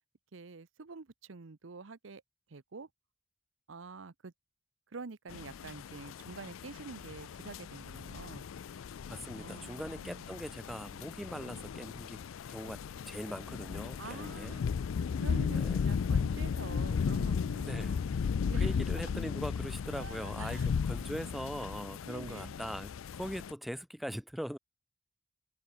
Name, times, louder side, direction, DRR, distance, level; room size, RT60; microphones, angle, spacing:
voice 1, 0.3-2.2 2.5-2.9 3.7-4.3 4.9-8.5 9.3-10.2 14.0-14.7 15.2-18.1 18.5-19.1 20.0-20.7 22.0-22.5, right 4 dB, 70° right, 0.8 m, -47 dB
sound 1, 5.3-23.5, left 6 dB, 90° left, 0.4 m, -35 dB
voice 2, 9.1-14.6 15.5-15.8 17.6-18.2 18.5-24.6, equal, ahead, 0.3 m, -41 dB
head